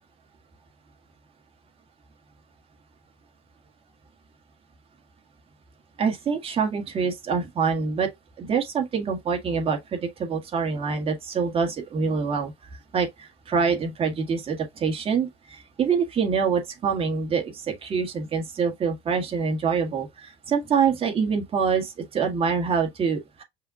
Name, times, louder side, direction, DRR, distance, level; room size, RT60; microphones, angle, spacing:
voice 1, 6.0-8.1 8.4-12.5 12.9-23.4, right 6 dB, 30° right, 1.5 m, -25 dB
5.5 x 2.3 x 3.7 m
cardioid pair, 160°, 20 cm